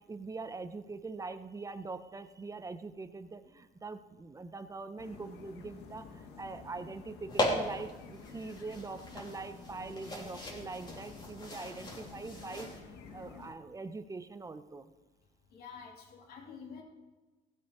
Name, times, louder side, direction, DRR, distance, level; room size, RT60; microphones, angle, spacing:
voice 1, 0.0-12.7 13.1-14.9, right 3 dB, 20° right, 11 dB, 0.8 m, -43 dB
sound 1, 5.0-13.5, left 5 dB, 85° left, 1.5 m, -51 dB
sound 2, 7.3-12.8, left 1 dB, 25° left, 3.3 m, -38 dB
voice 2, 15.5-16.8, left 6 dB, 65° left, -1 dB, 3.1 m, -48 dB
16.5 x 8.2 x 4.8 m, 1.2 s
cardioid pair, 110°, 17 cm